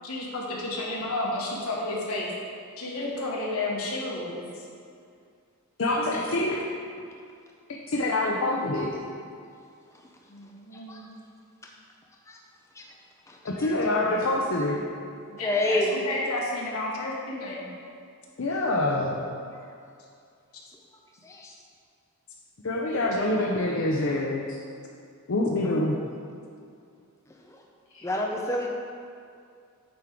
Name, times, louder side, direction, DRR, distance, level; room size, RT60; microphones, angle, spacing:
voice 1, 0.0-2.3 2.8-4.5 6.2-6.3 8.3-8.7 9.0-9.2 10.3-11.1 14.1-14.2 15.0-17.7 19.0-19.3 23.0-23.2 23.9-24.1, left 2 dB, 85° left, -3 dB, 1.4 m, -32 dB
voice 2, 5.8-6.6 7.9-8.9 13.4-14.8 18.4-19.2 22.6-24.5 25.3-26.0 27.9-28.0, left 2 dB, 60° left, -2 dB, 0.6 m, -26 dB
voice 3, 13.3-13.7 15.4-15.9 21.2-21.5 28.0-28.7, left 1 dB, 15° left, -1 dB, 0.5 m, -28 dB
8.5 x 3.7 x 4.5 m, 2.4 s
head